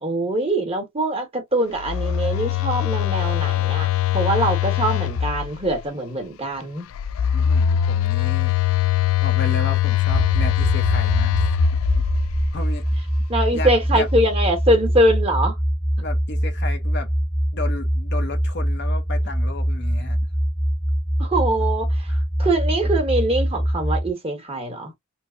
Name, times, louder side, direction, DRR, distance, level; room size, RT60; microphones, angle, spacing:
voice 1, 0.0-6.9 13.3-15.6 21.2-22.1 22.4-24.9, right 1 dB, 30° right, 1.2 m, -23 dB
Telephone, 1.7-5.8 6.9-12.6, left 10 dB, 80° left, 0.3 m, -22 dB
voice 2, 7.3-8.6 9.2-11.4 12.5-12.8 13.5-14.1 16.0-17.1 17.5-20.2 22.1-22.2, left 3 dB, 55° left, 0.8 m, -33 dB
sound 1, 10.1-24.1, equal, 10° left, 0.8 m, -23 dB
4.5 x 2.1 x 2.6 m
head